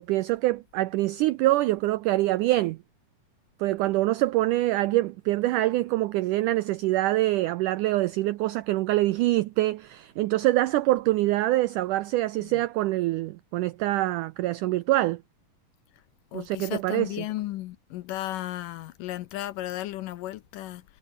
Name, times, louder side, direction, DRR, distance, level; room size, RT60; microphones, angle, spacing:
voice 1, 0.0-2.8 3.6-15.2 16.3-17.3, right 17 dB, 90° right, 1.8 m, -25 dB
voice 2, 16.3-20.8, left 15 dB, 75° left, 2.2 m, -34 dB
omnidirectional pair, 4.3 m